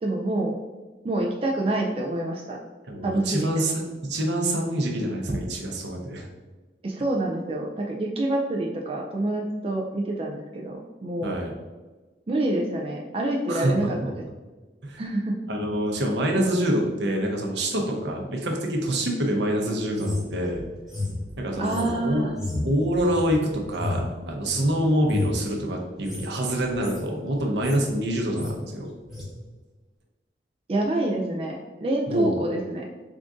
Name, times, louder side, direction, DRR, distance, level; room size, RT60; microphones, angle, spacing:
voice 1, 0.0-0.6 1.0-2.6 3.0-3.5 6.8-11.4 12.3-14.0 15.0-15.4 21.6-22.3 30.7-32.8, right 1 dB, 30° right, -1 dB, 0.3 m, -27 dB
voice 2, 2.9-3.8 4.1-6.3 11.2-11.5 13.5-13.9 14.8-15.0 15.5-20.6 21.4-22.2 22.6-28.9 32.1-32.4, right 1 dB, 75° right, 1 dB, 0.7 m, -26 dB
sound 1, 19.9-24.7 25.0-25.4 25.9-26.3 26.6-27.0 27.4-27.9 28.2-28.6 29.1-29.3, left 2 dB, ahead, 1.0 m, -32 dB
3.6 x 2.5 x 3.6 m, 1.2 s
head